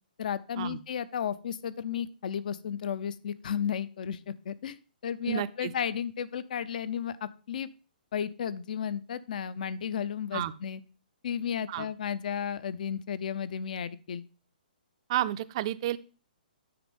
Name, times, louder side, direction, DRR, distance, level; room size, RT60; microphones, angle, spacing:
voice 1, 0.2-4.8 5.0-7.7 8.1-10.8 11.2-14.3, left 8 dB, 60° left, 17 dB, 0.6 m, -33 dB
voice 2, 5.3-5.7 10.3-10.5 11.7-11.9 15.1-16.0, right 13 dB, 35° right, 14 dB, 0.4 m, -31 dB
9.5 x 4.3 x 5.2 m, 0.36 s
hypercardioid pair, 155°, 5 cm